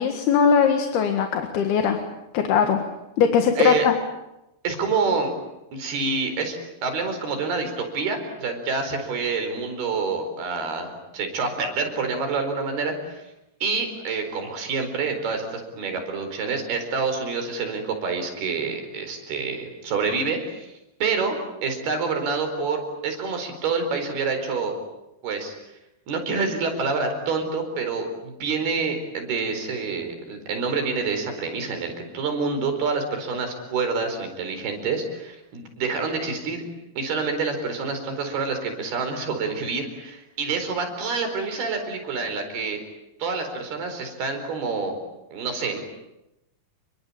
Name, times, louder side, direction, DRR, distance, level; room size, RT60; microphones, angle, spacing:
voice 1, 0.0-2.0 2.3-2.8 3.2-3.9, left 7 dB, 80° left, 5 dB, 3.7 m, -20 dB
voice 2, 4.6-5.3 5.7-13.2 13.6-20.7 21.0-21.4 21.6-24.7 25.2-25.5 26.1-36.7 37.0-42.8 43.2-45.0 45.3-45.8, right 4 dB, 75° right, 6 dB, 6.4 m, -27 dB
29.0 x 23.5 x 8.6 m, 0.92 s
omnidirectional pair, 4.5 m